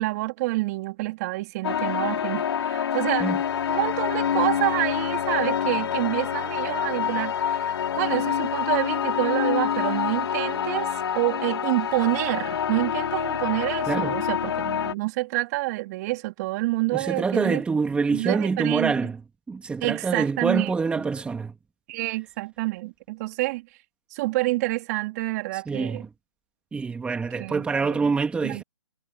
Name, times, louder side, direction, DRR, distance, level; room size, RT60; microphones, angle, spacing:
voice 1, 0.0-3.3 3.7-17.6 18.1-18.9 19.8-20.7 21.9-23.7 24.1-26.0 27.3-28.0 28.4-28.6, right 20 dB, 35° right, 3.4 m, -28 dB
sound 1, 1.6-14.9, left 8 dB, 60° left, 5.3 m, -26 dB
voice 2, 13.9-14.2 16.9-19.2 19.5-21.6 25.5-26.1 26.7-28.6, right 4 dB, 5° right, 2.8 m, -26 dB
hypercardioid pair, 145°, 15 cm